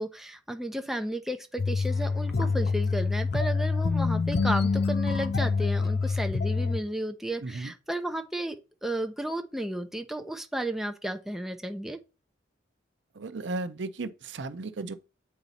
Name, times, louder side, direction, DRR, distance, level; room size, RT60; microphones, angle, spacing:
voice 1, 0.0-12.0, right 1 dB, ahead, 0.5 m, -33 dB
sound 1, 1.6-6.8, left 4 dB, 55° left, 0.5 m, -26 dB
voice 2, 7.4-7.7 13.2-14.9, right 3 dB, 65° right, 0.6 m, -35 dB
8.3 x 4.0 x 4.1 m
head